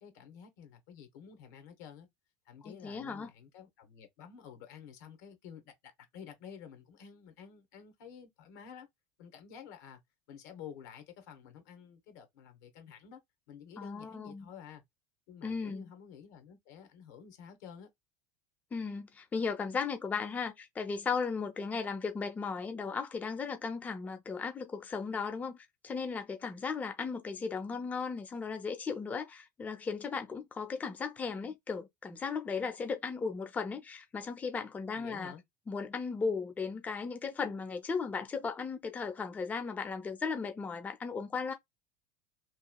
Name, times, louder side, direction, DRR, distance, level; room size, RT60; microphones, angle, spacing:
voice 1, 0.0-2.1 2.5-8.9 9.2-10.0 10.3-13.2 13.5-14.8 15.3-17.9 34.9-35.4, left 8 dB, 80° left, 1.0 m, -51 dB
voice 2, 2.6-3.3 13.8-14.5 15.4-15.9 18.7-35.3 35.7-41.5, left 5 dB, 15° left, 0.5 m, -36 dB
2.9 x 2.3 x 2.2 m
supercardioid pair, 130°, 9 cm